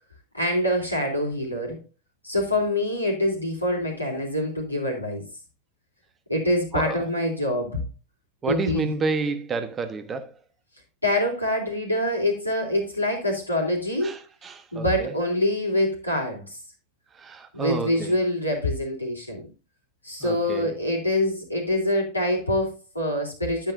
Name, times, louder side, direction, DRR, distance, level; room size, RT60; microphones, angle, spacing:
voice 1, 0.3-1.8 2.2-5.2 6.3-7.8 8.5-8.9 11.0-14.2 14.7-16.6 17.5-19.5 20.0-23.7, left 1 dB, 85° left, 3.4 m, -25 dB
voice 2, 8.4-10.3 14.0-15.1 17.2-18.2 20.2-20.7, right 4 dB, 20° right, 1.1 m, -30 dB
11.0 x 9.0 x 2.6 m
figure-of-eight pair, 90°, 0 cm